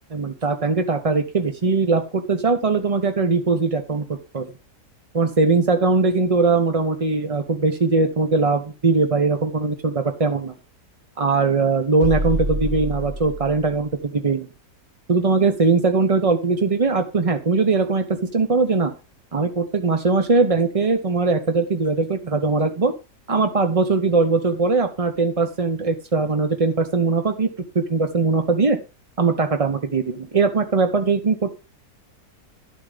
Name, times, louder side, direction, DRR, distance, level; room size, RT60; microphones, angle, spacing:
voice 1, 0.1-4.5 5.1-10.5 11.2-14.5 15.1-18.9 19.3-22.9 23.3-28.8 29.2-31.5, right 4 dB, 35° right, 6 dB, 0.6 m, -20 dB
sound 1, 12.0-13.8, right 1 dB, 50° right, 1.8 m, -27 dB
11.5 x 7.5 x 5.0 m, 0.30 s
omnidirectional pair, 1.7 m